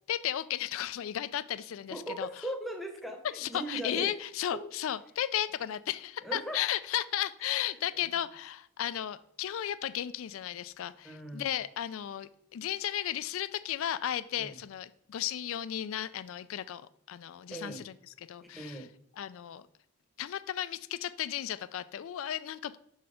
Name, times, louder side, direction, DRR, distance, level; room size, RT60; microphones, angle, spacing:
voice 1, 0.1-2.3 3.3-16.8 17.1-18.9 19.2-19.6 20.2-22.8, left 11 dB, 70° left, 14 dB, 0.3 m, -34 dB
voice 2, 1.9-4.1 4.5-4.6 6.2-6.6 7.9-8.0 11.0-11.5 14.4-14.6 17.5-17.8 18.5-18.9, right 1 dB, ahead, 3 dB, 0.8 m, -39 dB
5.6 x 4.1 x 4.9 m, 0.72 s
head